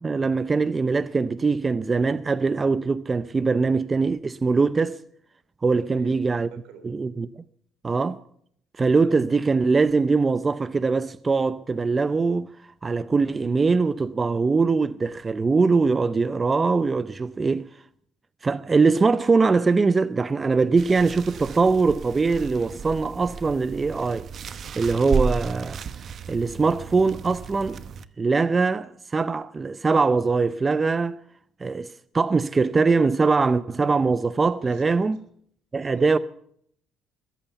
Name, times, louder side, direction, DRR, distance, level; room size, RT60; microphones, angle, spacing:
voice 1, 0.0-5.0 5.6-6.5 6.8-7.3 7.8-8.2 8.8-12.5 12.8-17.6 18.4-24.3 24.8-25.8 26.3-27.8 28.2-31.2 31.6-35.2 35.7-36.2, right 4 dB, 30° right, 0.5 m, -22 dB
voice 2, 5.8-6.2 6.5-6.9 34.6-34.9 35.7-36.2, right 8 dB, 85° right, 3.5 m, -43 dB
sound 1, 20.8-28.0, right 5 dB, 50° right, 0.9 m, -33 dB
21.0 x 8.8 x 6.9 m
cardioid pair, 90°, 0 cm